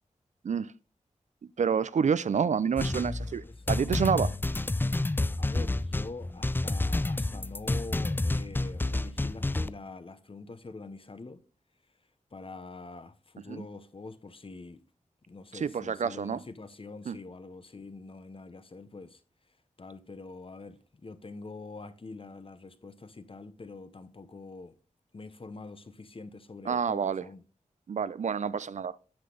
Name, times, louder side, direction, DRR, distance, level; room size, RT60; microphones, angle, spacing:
voice 1, 1.6-4.3 13.5-13.6 15.5-16.4 17.1-17.2 26.7-27.3 27.9-29.0, right 6 dB, 65° right, 0.4 m, -28 dB
sound 1, 2.8-9.7, left 2 dB, 15° left, 0.4 m, -29 dB
voice 2, 5.4-11.4 12.3-14.8 15.3-19.2 19.8-24.8 25.1-27.4, left 3 dB, 45° left, 0.8 m, -45 dB
8.8 x 5.8 x 3.8 m
cardioid pair, 55°, 13 cm